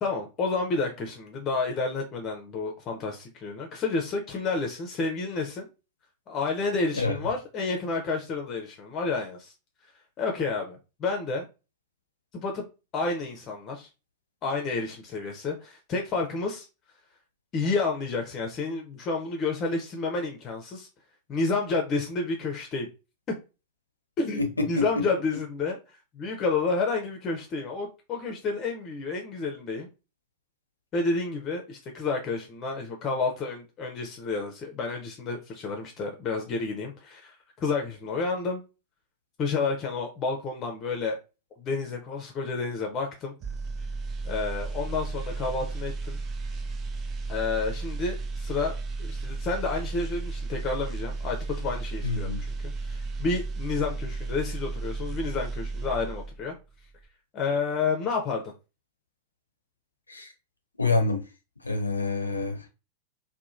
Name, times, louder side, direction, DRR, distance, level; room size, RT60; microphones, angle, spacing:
voice 1, 0.0-5.7 6.3-9.5 10.2-11.4 12.3-12.7 12.9-13.9 14.4-16.7 17.5-20.9 21.3-22.9 24.2-25.8 26.1-29.9 30.9-38.6 39.4-41.2 41.6-43.3 44.2-46.2 47.3-48.7 49.0-56.5 57.3-58.4, left 4 dB, 30° left, 2 dB, 0.5 m, -30 dB
voice 2, 24.4-24.9 52.0-52.4 60.1-60.3 60.8-61.2 61.6-62.7, left 3 dB, 80° left, 5 dB, 0.5 m, -27 dB
sound 1, 43.4-56.5 56.9-57.1, right 3 dB, 30° right, 0.4 m, -34 dB
2.9 x 2.2 x 2.5 m, 0.30 s
figure-of-eight pair, 90°, 0 cm